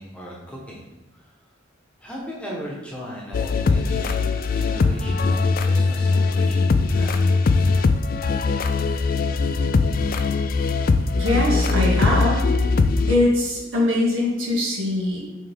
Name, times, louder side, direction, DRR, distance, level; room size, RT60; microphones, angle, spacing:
voice 1, 0.0-1.3 2.0-4.2 4.5-7.2, equal, 5° left, -4 dB, 1.1 m, -37 dB
sound 1, 3.3-13.2, left 4 dB, 45° left, 0.3 m, -21 dB
voice 2, 11.2-12.4 13.1-15.2, left 1 dB, 85° right, -3 dB, 1.9 m, -22 dB
8.3 x 3.5 x 3.5 m, 1.0 s
head